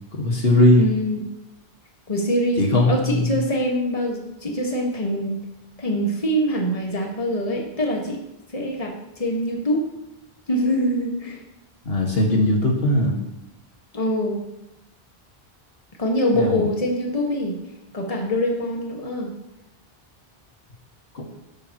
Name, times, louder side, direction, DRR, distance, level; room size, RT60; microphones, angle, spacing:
voice 1, 0.1-0.9 2.6-3.4 11.8-13.2 16.3-16.7 21.1-21.2, left 1 dB, 70° left, 0 dB, 2.0 m, -19 dB
voice 2, 0.8-1.2 2.1-5.4 5.8-8.2 8.5-9.8 10.5-11.4 13.9-14.4 16.0-17.6 17.9-19.3, equal, 35° left, 0 dB, 1.8 m, -24 dB
11.5 x 11.5 x 3.1 m, 0.88 s
omnidirectional pair, 1.0 m